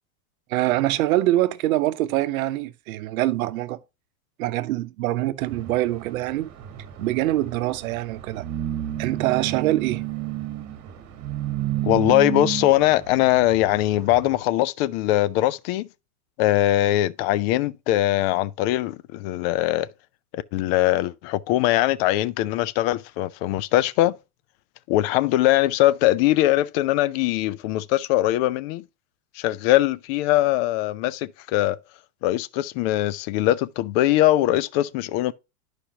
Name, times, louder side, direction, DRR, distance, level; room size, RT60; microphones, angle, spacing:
voice 1, 0.5-3.8 4.4-6.5 7.0-8.4 9.0-10.0, right 15 dB, 70° right, 0.8 m, -24 dB
sound 1, 5.4-14.4, right 13 dB, 35° right, 1.6 m, -32 dB
voice 2, 11.8-15.9 16.4-19.9 20.3-24.2 24.9-28.8 29.4-31.8 32.2-35.3, left 15 dB, 45° left, 0.5 m, -21 dB
11.5 x 5.0 x 2.8 m
hypercardioid pair, 120°, 44 cm